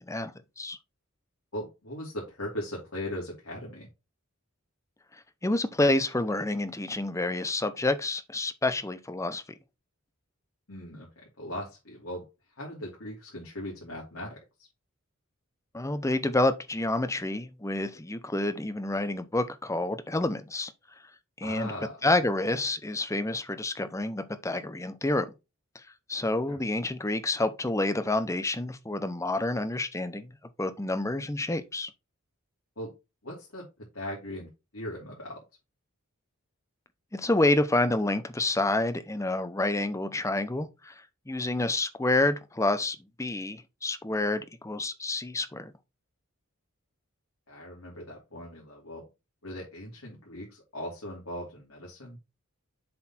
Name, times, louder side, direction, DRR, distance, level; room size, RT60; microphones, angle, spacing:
voice 1, 1.5-3.9 10.7-12.3 12.6-14.7 21.4-22.1 26.5-26.6 32.8-32.9 33.2-33.6 33.9-35.4 47.5-49.0 49.4-52.2, left 1 dB, 70° left, 3.0 m, -39 dB
voice 2, 5.4-9.4 15.7-20.7 21.4-21.7 22.0-25.3 26.1-30.3 30.6-31.9 37.1-40.9 41.3-45.7, left 2 dB, 15° left, 0.7 m, -28 dB
7.6 x 4.0 x 4.3 m
head